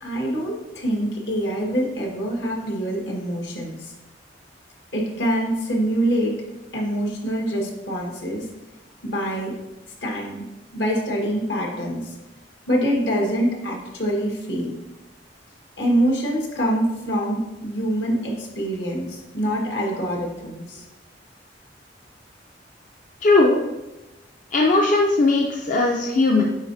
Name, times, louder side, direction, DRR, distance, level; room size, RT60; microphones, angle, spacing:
voice 1, 0.0-3.9 4.9-6.3 6.7-8.4 9.0-9.5 10.0-10.4 10.7-12.1 12.7-14.7 15.8-20.8, equal, 75° left, -1 dB, 1.5 m, -25 dB
voice 2, 23.2-23.6 24.5-26.4, left 2 dB, 45° left, 0 dB, 0.5 m, -18 dB
9.0 x 4.0 x 2.7 m, 1.0 s
head